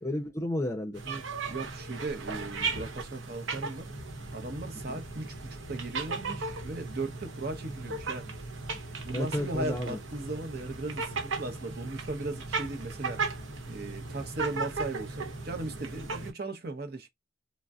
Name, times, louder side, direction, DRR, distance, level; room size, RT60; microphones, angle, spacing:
voice 1, 0.0-1.0 4.9-5.0 9.1-10.0 16.2-16.3, left 1 dB, 15° left, 0.6 m, -32 dB
sound 1, 0.9-16.3, right 3 dB, 80° right, 0.9 m, -37 dB
voice 2, 1.1-3.9 4.3-8.3 9.0-13.2 13.7-17.1, right 2 dB, 50° right, 0.8 m, -37 dB
3.8 x 2.0 x 2.4 m
head